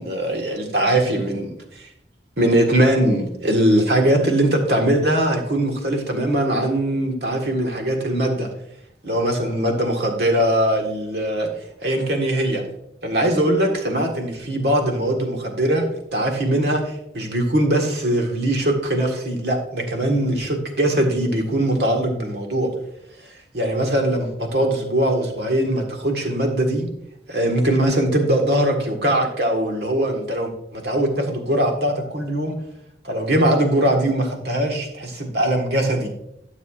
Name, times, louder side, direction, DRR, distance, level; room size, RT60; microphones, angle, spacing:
voice 1, 0.0-1.9 2.4-8.5 9.0-11.5 11.8-12.6 13.0-22.7 23.5-26.9 27.3-32.6 33.0-36.1, right 1 dB, 70° right, 2 dB, 1.6 m, -21 dB
12.5 x 6.7 x 2.5 m, 0.77 s
head